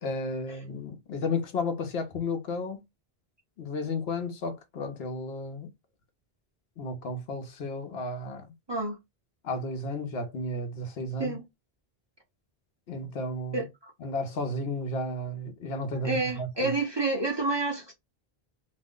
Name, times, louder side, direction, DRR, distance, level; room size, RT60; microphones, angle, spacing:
voice 1, 0.0-2.8 3.6-5.7 6.8-8.5 9.4-11.3 12.9-13.7 14.0-16.7, left 2 dB, 75° left, 1.0 m, -33 dB
voice 2, 13.5-13.9 16.0-17.9, right 2 dB, 30° right, 0.8 m, -29 dB
2.7 x 2.1 x 3.6 m
omnidirectional pair, 1.0 m